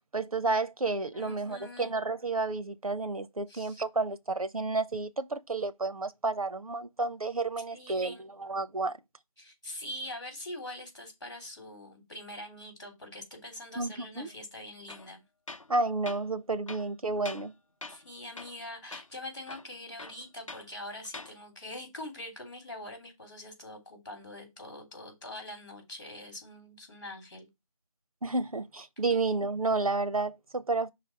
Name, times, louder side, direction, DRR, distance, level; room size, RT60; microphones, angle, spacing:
voice 1, 0.1-9.0 13.8-14.3 15.7-17.5 28.2-30.9, right 3 dB, 85° right, 0.9 m, -31 dB
voice 2, 1.1-1.9 3.5-3.8 7.7-8.3 9.4-15.2 17.9-27.5, left 1 dB, 35° left, 3.2 m, -44 dB
Tools, 14.9-15.1 15.5-15.7 16.1-16.2 16.7-17.5 17.8-18.1 18.4-18.6 18.9-19.1 19.5-20.7 21.1-21.3, left 3 dB, 65° left, 0.8 m, -44 dB
5.8 x 3.4 x 5.8 m
figure-of-eight pair, 180°, 18 cm